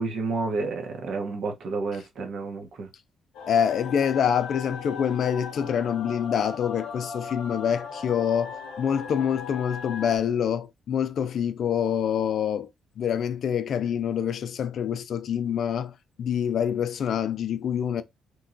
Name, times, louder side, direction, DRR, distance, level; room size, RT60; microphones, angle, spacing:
voice 1, 0.0-2.9, right 3 dB, 70° right, 0.8 m, -30 dB
sound 1, 3.3-10.2, left 5 dB, 90° left, 0.7 m, -38 dB
voice 2, 3.5-12.7 13.0-18.0, left 8 dB, 65° left, 0.3 m, -26 dB
3.0 x 2.2 x 2.5 m
cardioid pair, 90°, 0 cm